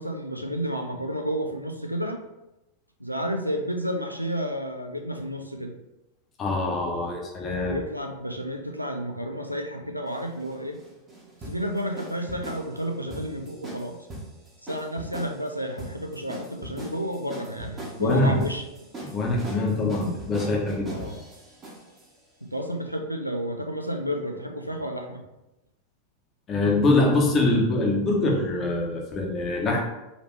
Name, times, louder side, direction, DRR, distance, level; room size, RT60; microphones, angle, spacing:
voice 1, 0.0-2.2 3.0-5.7 7.6-10.8 11.5-14.0 14.6-18.7 20.9-21.2 22.4-25.2, equal, 90° right, 4 dB, 0.4 m, -31 dB
voice 2, 6.4-7.8 18.0-18.4 19.1-21.0 26.5-29.8, left 2 dB, 25° left, 0 dB, 0.9 m, -24 dB
sound 1, 10.1-22.1, right 1 dB, 20° right, 1.1 m, -40 dB
4.0 x 2.9 x 3.1 m, 0.96 s
figure-of-eight pair, 90°, 0 cm